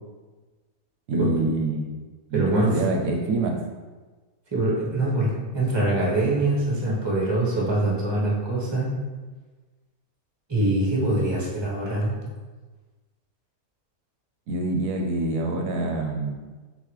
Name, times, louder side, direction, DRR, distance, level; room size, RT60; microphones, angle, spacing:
voice 1, 1.1-2.0 2.3-3.6 14.5-16.4, right 2 dB, 75° right, 1 dB, 1.0 m, -25 dB
voice 2, 2.3-2.7 4.5-8.9 10.5-12.1, right 2 dB, 20° right, -5 dB, 1.0 m, -24 dB
3.8 x 3.7 x 3.2 m, 1.3 s
omnidirectional pair, 1.5 m